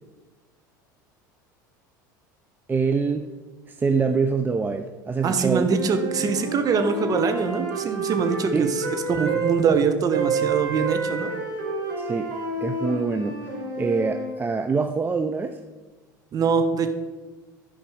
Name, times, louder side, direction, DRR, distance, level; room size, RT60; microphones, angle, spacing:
voice 1, 2.7-3.3 3.7-5.8 8.5-8.7 12.0-12.3 12.6-15.6, right 4 dB, 20° right, 7 dB, 0.5 m, -25 dB
voice 2, 5.2-11.3 16.3-16.9, right 5 dB, 35° right, 7 dB, 1.1 m, -23 dB
sound 1, 5.5-9.6 10.1-14.3, right 3 dB, 80° right, 3.1 m, -29 dB
11.0 x 5.1 x 5.1 m, 1.3 s
hypercardioid pair, 80°, 10 cm